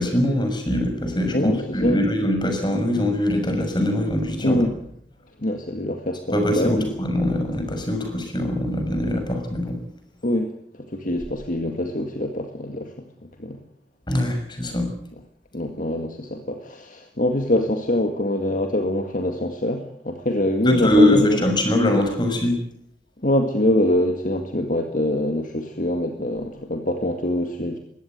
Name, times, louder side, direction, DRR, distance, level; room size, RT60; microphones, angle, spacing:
voice 1, 0.0-4.7 6.3-9.8 14.1-14.9 20.6-22.6, left 1 dB, 25° left, 5 dB, 6.3 m, -22 dB
voice 2, 1.3-2.1 4.4-4.7 5.4-6.9 10.2-13.0 13.2-13.6 14.7-14.8 15.5-21.5 23.2-27.8, left 1 dB, 45° left, 5 dB, 1.9 m, -24 dB
22.0 x 16.5 x 9.5 m, 0.71 s
head